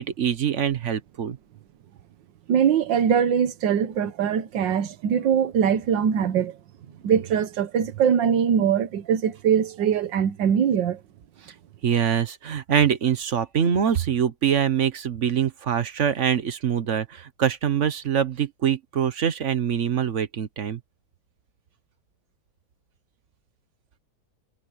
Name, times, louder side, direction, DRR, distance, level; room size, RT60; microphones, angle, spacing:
voice 1, 0.0-1.4 11.8-20.8, right 8 dB, 50° right, 1.0 m, -24 dB
voice 2, 2.5-6.6 7.0-11.0, right 8 dB, 65° right, 1.6 m, -22 dB
omnidirectional pair, 2.2 m